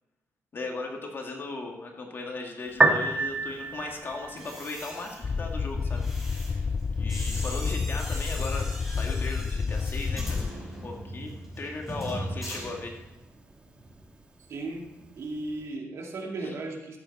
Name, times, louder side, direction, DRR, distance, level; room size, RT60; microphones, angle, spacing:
voice 1, 0.5-6.0 6.9-8.7 8.9-10.4 10.8-12.9 16.4-16.5, left 3 dB, 50° left, 1 dB, 2.2 m, -37 dB
Piano, 2.7-15.7, right 3 dB, 20° right, 1.5 m, -34 dB
sound 1, 4.2-13.3 13.6-13.9, equal, ahead, 4.8 m, -41 dB
sound 2, 5.2-10.5, left 5 dB, 30° left, 0.3 m, -29 dB
voice 2, 14.5-14.9 15.2-17.0, right 2 dB, 70° right, 1 dB, 2.3 m, -35 dB
14.5 x 8.4 x 4.2 m, 1.0 s
cardioid pair, 95°, 5 cm